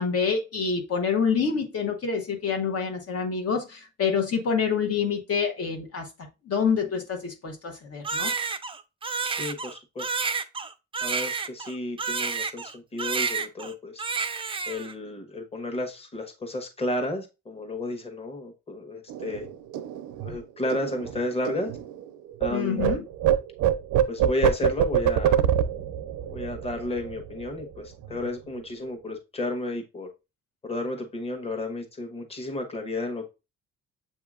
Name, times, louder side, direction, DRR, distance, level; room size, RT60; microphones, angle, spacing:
voice 1, 0.0-6.1 6.5-8.3 22.5-23.0, left 6 dB, 50° left, 1.0 m, -27 dB
Crying sobbing, 8.0-12.7 13.0-13.7 14.0-14.9, right 5 dB, 20° right, 0.4 m, -30 dB
voice 2, 9.2-10.2 11.0-14.0 14.7-19.5 20.2-21.7 22.4-22.9 24.1-25.4 26.3-30.1 30.6-33.3, left 1 dB, 20° left, 1.1 m, -32 dB
sound 1, 19.1-22.5 22.8-27.7 28.0-28.3 28.6-29.1, right 10 dB, 80° right, 0.5 m, -26 dB
7.3 x 2.8 x 2.4 m
cardioid pair, 90°, 30 cm